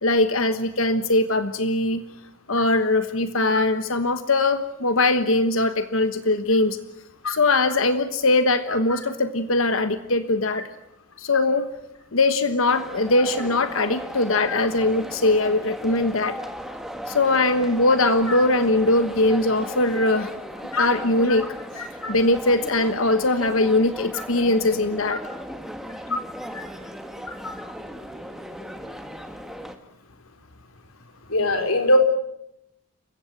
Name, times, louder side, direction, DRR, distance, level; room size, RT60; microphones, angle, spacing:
voice 1, 0.0-2.0 2.5-6.8 7.3-10.6 11.2-11.7 12.1-16.4 17.1-20.3 20.8-21.5 22.1-25.2, left 2 dB, 75° left, 10 dB, 1.3 m, -21 dB
sound 1, 12.7-29.8, equal, ahead, 1.7 m, -37 dB
voice 2, 21.8-22.1 26.5-26.6 27.3-27.4 31.3-32.0, left 1 dB, 90° left, 6 dB, 4.3 m, -23 dB
28.5 x 16.0 x 9.2 m, 0.83 s
head